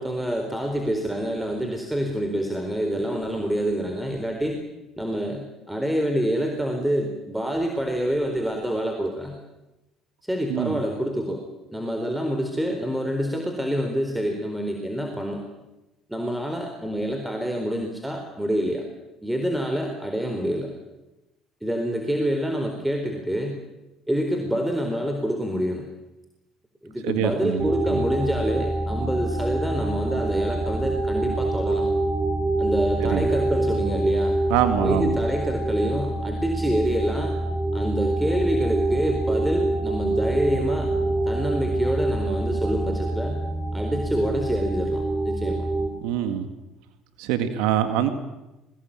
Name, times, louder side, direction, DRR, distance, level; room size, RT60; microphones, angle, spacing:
voice 1, 0.0-4.6 5.0-9.4 10.3-11.4 11.7-15.4 16.1-18.8 19.2-20.7 21.6-23.6 24.1-25.8 26.8-31.9 32.6-34.4 34.8-37.3 37.7-40.9 41.3-43.4 43.7-45.7, equal, 5° right, 4 dB, 4.3 m, -27 dB
voice 2, 10.5-10.8 27.0-28.0 33.0-33.3 34.5-35.2 46.0-46.5 47.2-48.1, right 10 dB, 75° right, 10 dB, 1.9 m, -24 dB
sound 1, 27.6-45.9, right 2 dB, 25° right, 4.8 m, -26 dB
23.0 x 20.0 x 9.0 m, 0.98 s
hypercardioid pair, 70°, 0 cm